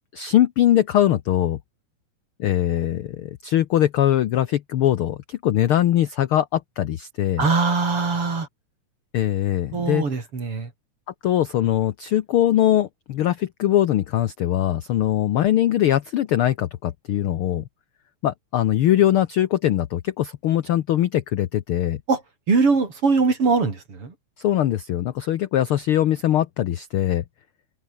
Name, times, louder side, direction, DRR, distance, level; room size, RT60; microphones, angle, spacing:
voice 1, 0.1-1.6 2.4-7.4 9.1-10.1 11.2-17.7 18.2-22.0 24.4-27.2, left 12 dB, 80° left, 1.2 m, -21 dB
voice 2, 7.4-8.5 9.7-10.7 22.1-22.2 22.5-24.1, right 4 dB, 45° right, 5.1 m, -21 dB
open air
omnidirectional pair, 3.6 m